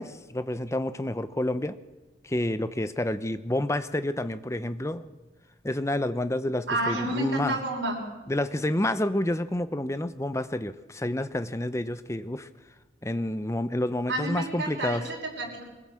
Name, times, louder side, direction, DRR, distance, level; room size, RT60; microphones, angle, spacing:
voice 1, 0.0-1.8 2.2-5.1 5.6-7.5 8.3-12.5 13.0-15.1, left 1 dB, 15° left, 12 dB, 0.7 m, -29 dB
voice 2, 6.7-8.0 14.1-15.7, right 1 dB, 65° right, -1 dB, 6.1 m, -30 dB
24.0 x 16.0 x 7.6 m, 1.1 s
head